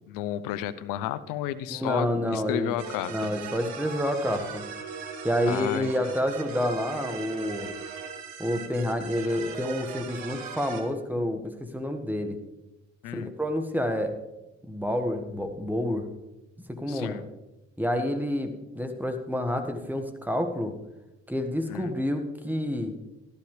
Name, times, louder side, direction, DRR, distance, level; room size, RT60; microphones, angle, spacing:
voice 1, 0.1-2.1 2.3-3.1 5.5-5.9 13.0-13.3 16.9-17.2 21.7-22.0, left 12 dB, 70° left, 14 dB, 0.6 m, -32 dB
voice 2, 1.7-2.7 3.1-4.6 5.2-7.7 8.4-12.4 13.1-14.1 14.6-16.0 16.7-17.2 17.8-20.7 21.3-22.9, left 1 dB, 5° right, 6 dB, 1.6 m, -28 dB
sound 1, 2.8-10.8, right 6 dB, 75° right, 1.4 m, -39 dB
13.0 x 11.5 x 3.3 m, 1.0 s
hypercardioid pair, 40°, 35 cm